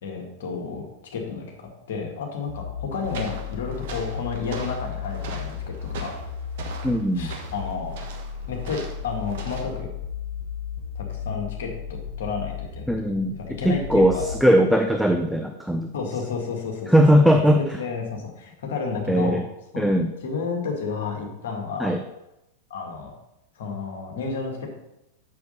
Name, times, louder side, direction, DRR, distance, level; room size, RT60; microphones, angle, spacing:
voice 1, 0.0-0.9 1.1-6.2 7.2-7.9 8.5-9.9 11.0-14.2 15.9-16.9 17.5-19.4 19.7-19.9 20.2-21.9 22.7-23.1 23.6-24.7, left 5 dB, 60° left, 1 dB, 1.9 m, -31 dB
sound 1, 2.5-14.4, left 8 dB, 75° left, 1.6 m, -35 dB
sound 2, 2.9-9.8, right 4 dB, 55° right, 1.2 m, -40 dB
voice 2, 6.8-7.3 12.9-13.4 13.6-15.9 16.9-17.8 19.1-19.4 19.8-20.1 21.8-22.0, equal, ahead, 5 dB, 0.5 m, -19 dB
6.9 x 6.5 x 5.4 m, 0.88 s
figure-of-eight pair, 90°, 0 cm